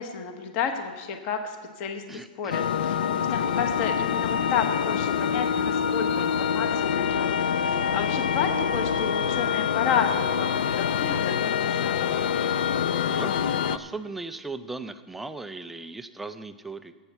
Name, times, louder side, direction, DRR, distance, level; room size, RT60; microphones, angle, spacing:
voice 1, 0.0-2.0 2.4-12.1, left 7 dB, 25° left, 6 dB, 0.9 m, -31 dB
voice 2, 2.1-2.6 13.1-13.3 13.6-16.9, right 3 dB, 5° right, 10 dB, 0.3 m, -37 dB
sound 1, 2.5-13.8, left 7 dB, 70° left, 0.5 m, -25 dB
22.0 x 8.0 x 4.6 m, 1.5 s
hypercardioid pair, 175°, 5 cm